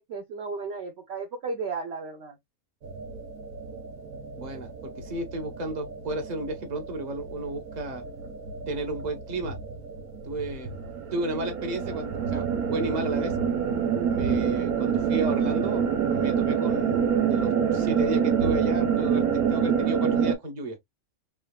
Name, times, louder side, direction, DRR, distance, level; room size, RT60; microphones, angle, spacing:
voice 1, 0.0-2.4, right 4 dB, 55° right, 0.9 m, -34 dB
sound 1, 2.8-20.4, right 7 dB, 90° right, 1.4 m, -27 dB
voice 2, 4.4-8.0 8.7-9.6 10.2-10.7 11.1-13.3 14.1-20.8, right 2 dB, 35° right, 1.0 m, -33 dB
3.6 x 3.2 x 2.3 m
omnidirectional pair, 1.5 m